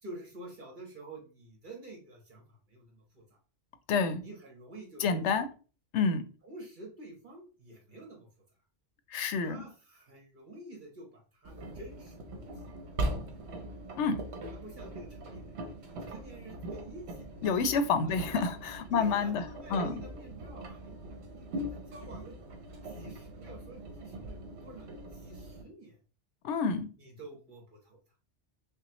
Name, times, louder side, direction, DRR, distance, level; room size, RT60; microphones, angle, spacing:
voice 1, 0.0-3.4 4.2-5.2 6.4-8.3 9.4-12.7 13.0-13.4 14.5-15.6 16.0-17.3 18.0-18.3 18.9-21.0 21.2-22.4 22.8-26.0 27.0-28.0, right 2 dB, 45° right, 1.3 m, -49 dB
voice 2, 3.9-4.2 5.0-5.5 5.9-6.2 9.1-9.6 14.0-14.2 17.4-19.4 19.7-20.0 26.4-26.9, left 5 dB, 85° left, 0.9 m, -28 dB
Engine, 11.4-25.6, right 1 dB, 70° right, 1.0 m, -41 dB
5.6 x 2.1 x 2.9 m
omnidirectional pair, 1.2 m